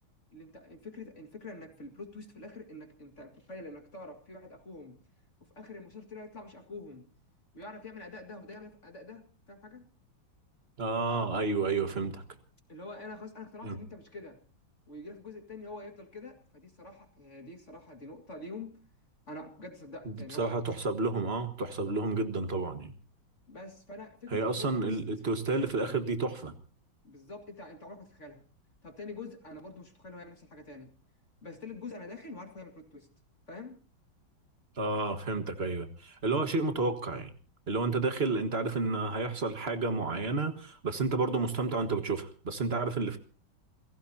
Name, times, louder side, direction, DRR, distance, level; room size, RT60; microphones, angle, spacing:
voice 1, 0.3-5.0 5.4-7.1 7.5-9.9 12.7-14.4 14.9-18.8 19.3-20.6 23.5-25.0 27.0-28.4 28.8-30.9 31.4-33.1 33.5-33.8, left 2 dB, 35° left, 5 dB, 2.3 m, -46 dB
voice 2, 10.8-12.2 13.6-13.8 20.3-22.9 24.3-26.5 34.8-37.3 37.7-43.2, right 3 dB, 35° right, 9 dB, 1.7 m, -31 dB
28.5 x 17.0 x 2.8 m, 0.38 s
omnidirectional pair, 2.2 m